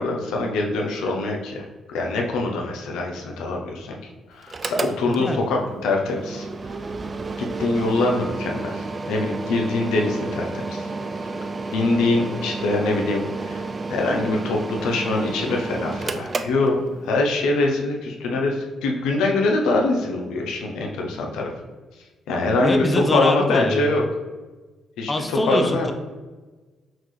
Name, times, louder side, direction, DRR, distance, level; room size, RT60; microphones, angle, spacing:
voice 1, 0.0-4.0 4.3-6.5 7.4-8.8 9.1-10.9 11.7-13.6 13.9-21.5 22.3-22.8 23.1-24.0 25.0-25.9, left 2 dB, 90° left, 1 dB, 0.7 m, -23 dB
Mechanical fan, 4.4-17.3, right 3 dB, 35° right, 0.3 m, -31 dB
voice 2, 5.1-5.4 22.6-23.8 25.1-25.9, left 1 dB, 20° left, 5 dB, 0.5 m, -23 dB
5.8 x 2.4 x 3.2 m, 1.3 s
cardioid pair, 90°, 0 cm